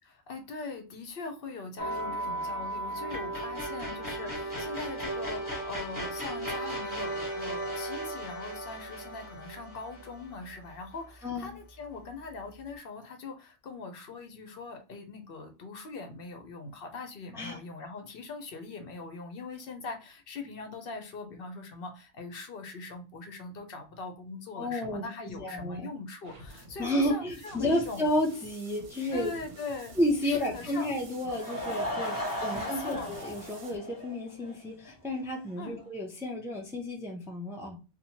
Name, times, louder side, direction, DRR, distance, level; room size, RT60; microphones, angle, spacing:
voice 1, 0.0-28.0 29.1-30.0 30.2-30.9 32.1-32.2 32.5-33.1 35.6-35.8, left 3 dB, 65° left, 6 dB, 0.8 m, -41 dB
sound 1, 1.8-11.0, right 1 dB, 20° right, 1.0 m, -36 dB
voice 2, 24.6-25.9 26.8-29.3 30.0-37.8, left 1 dB, 5° right, 0 dB, 0.4 m, -31 dB
sound 2, 26.2-33.8, right 2 dB, 55° right, 0.8 m, -50 dB
Laughter / Crowd, 31.1-34.5 34.9-35.0 35.5-35.6 35.8-35.9, equal, 20° left, 1.5 m, -36 dB
2.9 x 2.1 x 2.8 m, 0.31 s
omnidirectional pair, 1.1 m